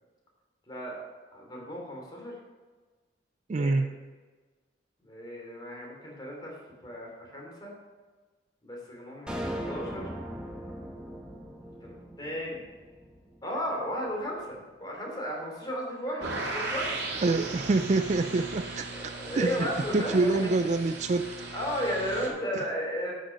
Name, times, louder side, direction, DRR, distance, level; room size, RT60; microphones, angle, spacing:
voice 1, 0.7-1.0 1.3-2.3 3.5-3.8 5.0-6.5 6.8-7.7 8.6-9.3 9.7-10.1 11.8-12.6 13.4-17.0 18.9-20.5 21.5-23.1, equal, 25° left, -1 dB, 2.9 m, -34 dB
voice 2, 3.5-3.9 17.2-18.9 19.4-21.3 22.6-22.7, right 3 dB, 40° right, 10 dB, 0.4 m, -26 dB
sound 1, 9.3-13.7, equal, 5° right, 1.1 m, -39 dB
sound 2, 16.2-22.3, right 2 dB, 65° right, 2.1 m, -37 dB
11.0 x 6.4 x 5.2 m, 1.4 s
head